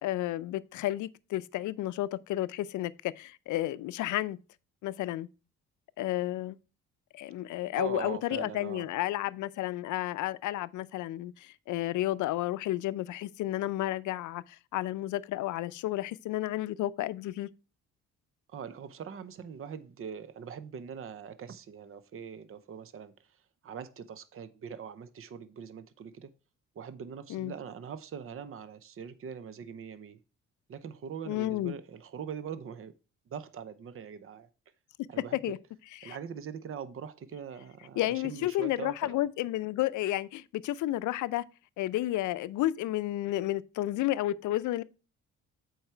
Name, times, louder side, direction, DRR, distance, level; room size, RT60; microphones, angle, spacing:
voice 1, 0.0-4.4 4.8-5.3 6.0-6.6 7.1-17.5 27.3-27.5 31.3-31.7 35.3-35.6 36.0-36.2 38.0-41.4 41.8-44.8, left 15 dB, 80° left, 0.5 m, -32 dB
voice 2, 7.8-8.9 18.5-23.4 23.6-26.3 26.7-30.2 30.7-32.9 33.3-34.5 35.1-35.4 36.0-39.2, right 7 dB, 45° right, 0.7 m, -42 dB
7.9 x 4.8 x 4.4 m
cardioid pair, 90°, 30 cm